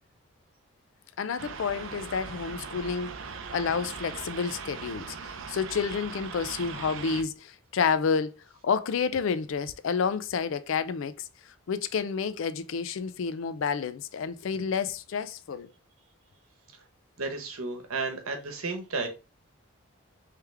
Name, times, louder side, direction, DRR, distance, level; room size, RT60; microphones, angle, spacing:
voice 1, 1.2-8.4 8.6-15.7, left 6 dB, 65° left, 0.4 m, -30 dB
sound 1, 1.4-7.2, right 5 dB, 65° right, 0.5 m, -40 dB
voice 2, 17.2-19.1, right 3 dB, 80° right, 1.0 m, -33 dB
3.4 x 3.3 x 3.2 m
head